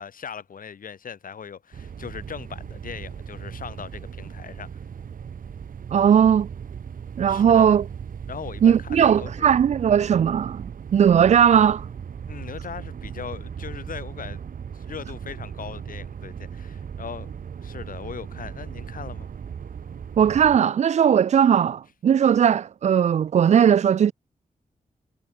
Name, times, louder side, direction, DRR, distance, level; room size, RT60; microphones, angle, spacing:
voice 1, 0.0-4.8 7.3-7.8 8.3-9.5 10.0-10.1 12.3-14.4 14.7-17.3 17.6-19.3, left 7 dB, 75° left, 6.8 m, -39 dB
sound 1, 1.7-20.6, right 7 dB, 75° right, 2.7 m, -37 dB
voice 2, 5.9-6.5 7.2-7.8 8.6-10.6 10.9-11.9 20.2-24.1, right 8 dB, 55° right, 0.4 m, -18 dB
wide cardioid pair, 150°, 14 cm